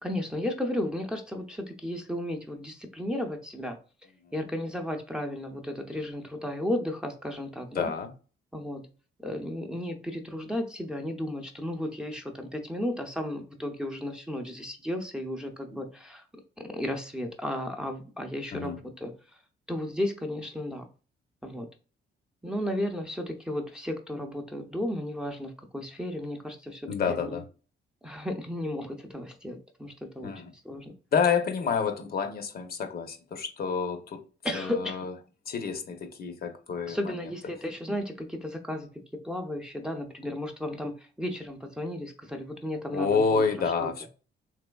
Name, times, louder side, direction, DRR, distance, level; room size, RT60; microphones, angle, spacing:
voice 1, 0.0-3.8 4.3-7.9 8.5-8.8 9.2-16.2 16.6-19.1 19.7-20.8 21.4-21.7 22.4-27.4 28.0-30.3 30.6-30.9 34.4-35.1 36.9-38.9 39.2-43.9, left 1 dB, 5° right, 0.5 m, -34 dB
voice 2, 7.7-8.1 18.5-18.8 26.9-27.4 30.2-30.5 31.1-34.2 34.5-35.1 35.5-37.3 42.9-44.1, left 5 dB, 50° left, 0.7 m, -29 dB
3.4 x 3.0 x 2.2 m
cardioid pair, 90°, 20 cm